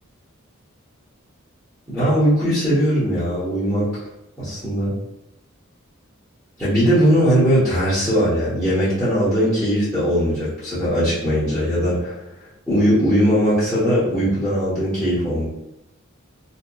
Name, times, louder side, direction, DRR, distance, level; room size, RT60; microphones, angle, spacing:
voice 1, 1.9-3.9 4.4-4.9 6.6-12.1 12.7-15.5, equal, 5° left, -14 dB, 0.9 m, -19 dB
2.7 x 2.2 x 2.2 m, 0.91 s
head